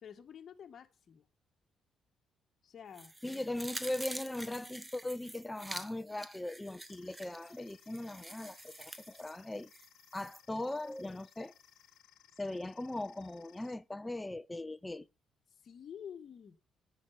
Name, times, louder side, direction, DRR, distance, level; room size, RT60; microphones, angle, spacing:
voice 1, 0.0-1.3 2.6-3.4 15.6-16.6, left 8 dB, 55° left, 1.6 m, -50 dB
sound 1, 2.9-10.4 10.8-10.9, right 1 dB, 15° right, 1.2 m, -47 dB
voice 2, 3.2-9.7 10.1-11.5 12.4-15.1, left 1 dB, 15° left, 0.5 m, -39 dB
sound 2, 6.9-13.7, left 11 dB, 80° left, 1.3 m, -63 dB
10.5 x 9.3 x 5.7 m
cardioid pair, 90°, 0 cm